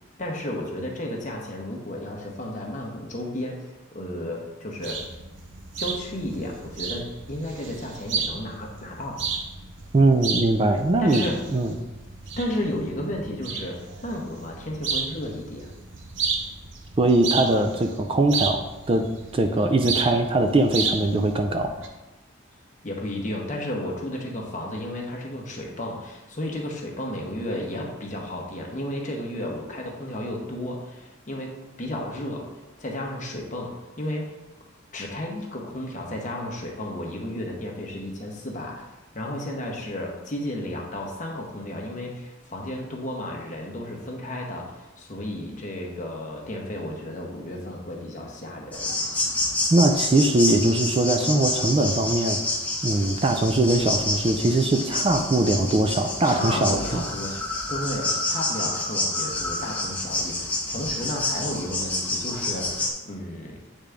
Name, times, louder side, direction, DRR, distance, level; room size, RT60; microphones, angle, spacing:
voice 1, 0.2-5.0 5.8-9.2 11.0-11.4 12.4-15.7 22.8-32.5 32.8-34.3 34.9-38.9 39.1-49.0 56.2-63.6, left 1 dB, 40° left, -1 dB, 1.0 m, -33 dB
sound 1, 4.8-21.9, right 5 dB, 60° right, 0.7 m, -33 dB
voice 2, 9.9-11.2 11.5-11.7 17.0-18.6 18.9-21.7 49.7-52.4 52.8-57.0, right 2 dB, 25° right, 5 dB, 0.4 m, -21 dB
sound 2, 48.7-62.9, left 2 dB, 10° left, 0.8 m, -28 dB
8.4 x 3.7 x 3.4 m, 1.0 s
head